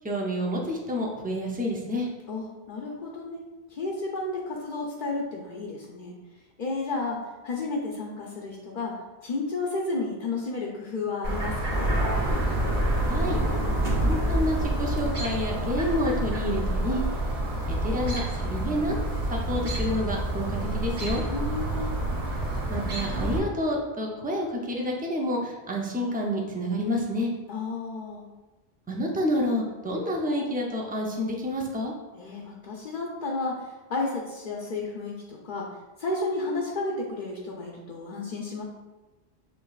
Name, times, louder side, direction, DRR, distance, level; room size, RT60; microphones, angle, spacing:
voice 1, 0.0-2.1 13.1-13.4 14.0-17.0 17.7-19.0 19.3-21.2 22.7-27.3 28.9-31.9, equal, 10° right, -1 dB, 0.5 m, -29 dB
voice 2, 2.3-3.4 3.7-11.9 21.3-22.0 27.5-28.3 32.1-38.6, left 3 dB, 50° left, -2 dB, 0.7 m, -32 dB
Chirp tweet, 11.2-23.4, right 1 dB, 80° right, 1.4 m, -29 dB
sound 1, 11.7-15.9, right 1 dB, 50° right, 1.2 m, -28 dB
6.7 x 3.3 x 2.4 m, 1.2 s
omnidirectional pair, 1.1 m